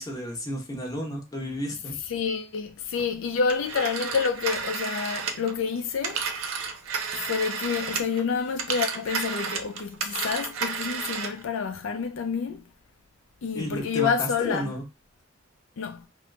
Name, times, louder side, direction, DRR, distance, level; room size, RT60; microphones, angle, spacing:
voice 1, 0.0-2.0 13.5-14.8, equal, 20° left, 0.9 m, -32 dB
voice 2, 2.1-6.3 7.1-12.7 13.4-14.7 15.8-16.1, left 6 dB, 75° left, 0.4 m, -28 dB
Telephone, 3.5-8.2 8.5-11.4, right 5 dB, 80° right, 0.5 m, -32 dB
2.8 x 2.6 x 3.2 m
head